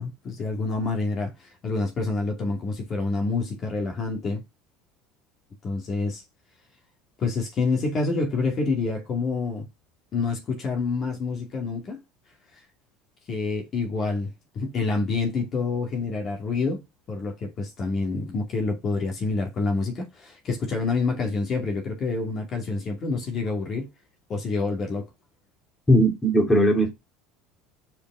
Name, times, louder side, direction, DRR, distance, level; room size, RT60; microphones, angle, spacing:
voice 1, 0.0-4.4 5.6-6.2 7.2-9.7 10.1-12.0 13.3-23.9 24.3-25.1, left 3 dB, 40° left, 2.3 m, -27 dB
voice 2, 25.9-26.9, equal, 15° left, 2.7 m, -18 dB
5.2 x 5.0 x 5.4 m
supercardioid pair, 95°, 0 cm